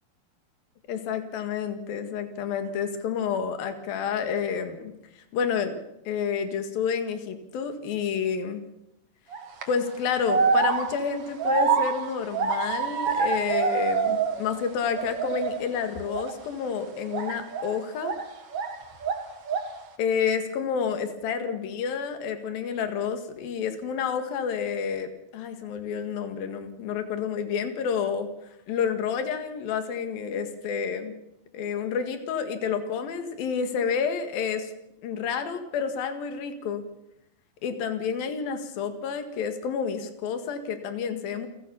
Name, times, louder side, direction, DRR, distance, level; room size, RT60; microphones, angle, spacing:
voice 1, 0.9-5.8 6.1-8.6 9.7-18.1 20.0-31.1 31.5-34.7 35.0-36.8 37.6-41.5, left 6 dB, 70° left, 8 dB, 3.7 m, -29 dB
sound 1, 9.3-9.6 10.2-14.6 14.9-15.6 16.1-16.3 17.1-18.8 19.0-19.8, right 5 dB, 45° right, 2.7 m, -26 dB
29.0 x 16.5 x 7.0 m, 0.86 s
omnidirectional pair, 4.3 m